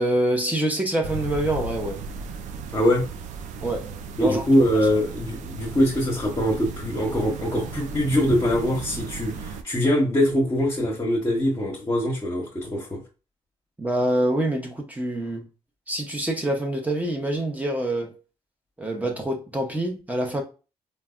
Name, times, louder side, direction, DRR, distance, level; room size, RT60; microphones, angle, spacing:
voice 1, 0.0-2.0 3.6-4.4 13.8-15.5 15.9-18.1 18.8-20.4, right 1 dB, 10° right, 0.7 m, -26 dB
sound 1, 1.0-9.6, right 4 dB, 75° right, 0.4 m, -36 dB
voice 2, 2.7-3.1 4.2-13.0, equal, 25° left, 0.9 m, -23 dB
3.3 x 2.1 x 2.3 m
supercardioid pair, 60°, 12 cm